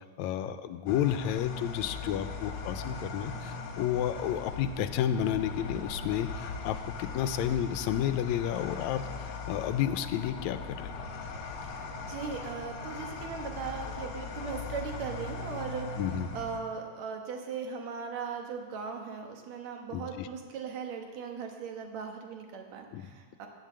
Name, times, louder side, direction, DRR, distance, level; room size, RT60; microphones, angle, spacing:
voice 1, 0.2-10.9 16.0-16.3 19.9-20.3 22.9-23.1, left 10 dB, 80° left, 11 dB, 1.8 m, -31 dB
sound 1, 0.9-16.6, left 4 dB, 55° left, 1.8 m, -39 dB
voice 2, 11.6-15.9 16.3-23.5, right 6 dB, 70° right, 3 dB, 2.5 m, -38 dB
10.5 x 9.0 x 7.6 m, 1.6 s
omnidirectional pair, 3.3 m